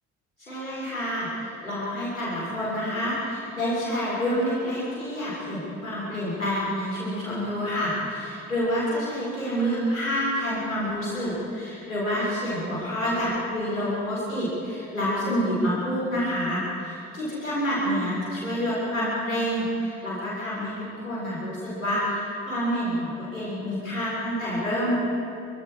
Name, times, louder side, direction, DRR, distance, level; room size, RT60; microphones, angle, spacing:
voice 1, 0.4-24.9, equal, 85° left, -7 dB, 6.8 m, -28 dB
27.5 x 25.0 x 5.1 m, 2.8 s
figure-of-eight pair, 45°, 39 cm